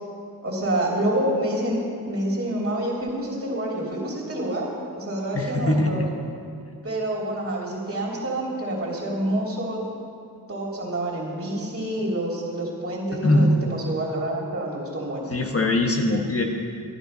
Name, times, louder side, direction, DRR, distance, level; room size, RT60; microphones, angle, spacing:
voice 1, 0.4-6.1 6.8-9.8 10.5-15.2, right 1 dB, 40° right, -3 dB, 3.2 m, -27 dB
voice 2, 5.3-6.0 13.2-13.5 15.3-16.4, left 2 dB, 40° left, 2 dB, 1.2 m, -21 dB
12.5 x 10.5 x 5.5 m, 2.4 s
wide cardioid pair, 105°, 36 cm